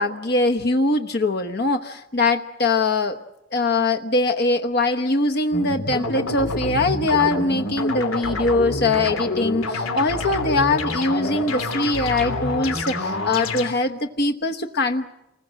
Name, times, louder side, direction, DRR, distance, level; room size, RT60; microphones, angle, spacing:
voice 1, 0.0-3.2 3.5-15.1, left 2 dB, 50° left, 4 dB, 1.1 m, -22 dB
sound 1, 5.5-13.7, left 2 dB, 90° left, 3.3 m, -27 dB
28.5 x 20.5 x 7.5 m, 0.88 s
head